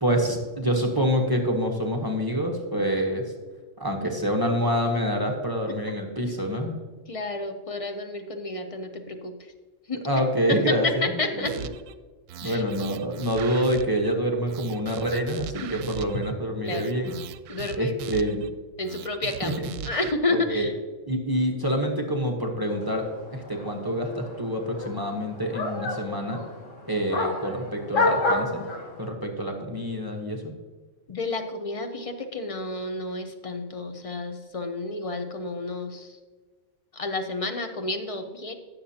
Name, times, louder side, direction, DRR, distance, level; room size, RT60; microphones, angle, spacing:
voice 1, 0.0-3.2 3.8-6.8 10.0-11.1 11.4-11.7 12.4-17.1 17.8-18.4 19.4-19.7 20.3-20.7 21.1-23.0 23.3-26.4 26.9-28.6 29.0-30.5, equal, 20° right, 1 dB, 1.0 m, -26 dB
voice 2, 7.1-9.5 9.9-10.0 10.5-11.5 12.4-12.6 15.6-15.7 16.6-16.9 17.5-17.9 18.8-19.6 19.8-20.8 31.1-36.2 36.9-38.5, left 2 dB, 30° left, 6 dB, 0.8 m, -30 dB
sound 1, 11.4-11.9 12.3-14.1 14.5-16.3 16.6-18.5 18.8-20.1, right 9 dB, 85° right, 0.9 m, -39 dB
sound 2, 22.7-29.1, left 2 dB, 75° left, 1.8 m, -30 dB
16.5 x 6.8 x 2.8 m, 1.4 s
omnidirectional pair, 1.3 m